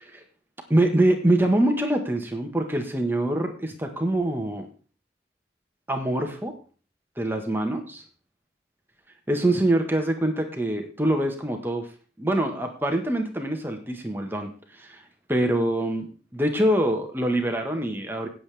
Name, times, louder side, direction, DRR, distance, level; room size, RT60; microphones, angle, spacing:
voice 1, 0.7-4.7 5.9-6.5 7.2-8.0 9.3-11.9 12.2-15.0 15.3-16.1 16.3-18.3, right 1 dB, 10° right, 4 dB, 1.4 m, -24 dB
18.5 x 7.7 x 3.5 m, 0.38 s
head